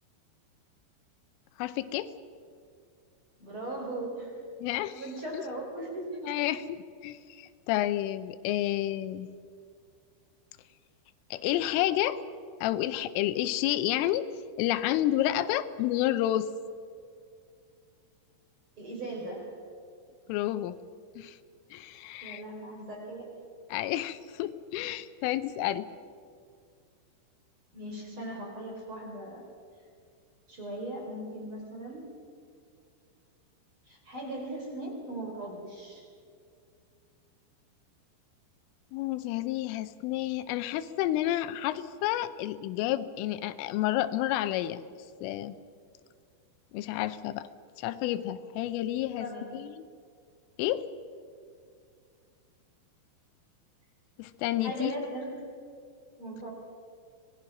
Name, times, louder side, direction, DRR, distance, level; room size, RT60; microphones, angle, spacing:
voice 1, 1.6-2.1 4.6-5.0 5.3-5.4 6.3-6.8 7.0-9.3 11.3-12.2 12.6-14.3 14.6-16.5 20.3-20.8 21.2-21.4 21.7-22.4 23.7-25.9 38.9-44.8 45.2-45.5 46.7-47.5 47.8-49.3 49.5-49.8 50.6-50.9 54.2-54.9, left 13 dB, 85° left, 12 dB, 3.3 m, -30 dB
voice 2, 3.4-4.3 4.9-6.2 18.8-19.6 22.2-23.5 27.7-29.4 30.5-32.1 33.9-36.1 49.2-49.5 54.6-55.5 56.2-56.5, right 1 dB, 30° right, 0 dB, 3.7 m, -38 dB
25.0 x 19.5 x 5.9 m, 2.2 s
omnidirectional pair, 5.7 m